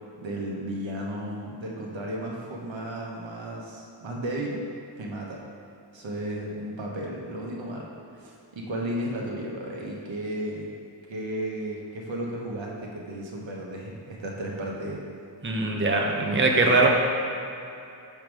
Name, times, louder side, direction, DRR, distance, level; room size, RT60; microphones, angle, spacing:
voice 1, 0.2-4.6 5.0-5.4 5.9-7.9 8.1-10.7 11.1-15.0, right 1 dB, 90° right, -2 dB, 1.1 m, -34 dB
voice 2, 15.4-16.9, right 3 dB, 25° right, 0 dB, 0.8 m, -21 dB
6.5 x 3.4 x 6.1 m, 2.7 s
cardioid pair, 60°, 44 cm